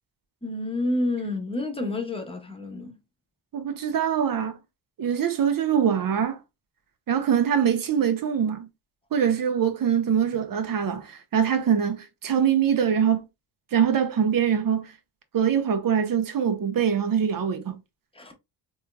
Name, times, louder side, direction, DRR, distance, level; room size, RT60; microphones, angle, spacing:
voice 1, 0.4-3.0 18.1-18.3, left 2 dB, 15° left, 1.0 m, -29 dB
voice 2, 3.5-4.6 5.0-6.4 7.1-8.7 9.1-13.2 13.7-14.9 15.3-17.8, right 8 dB, 50° right, 0.9 m, -23 dB
3.5 x 3.1 x 2.2 m
cardioid pair, 100°, 43 cm